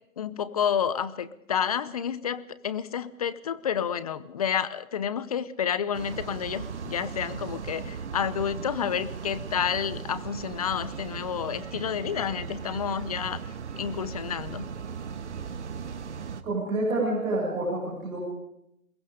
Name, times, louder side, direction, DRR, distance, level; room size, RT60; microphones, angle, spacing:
voice 1, 0.2-13.4 13.8-14.7, left 8 dB, 25° left, 16 dB, 0.9 m, -30 dB
sound 1, 5.9-16.4, right 6 dB, 55° right, 1.9 m, -38 dB
voice 2, 16.4-18.2, right 2 dB, 10° right, -8 dB, 7.1 m, -28 dB
27.0 x 22.0 x 5.1 m, 0.77 s
hypercardioid pair, 160°, 42 cm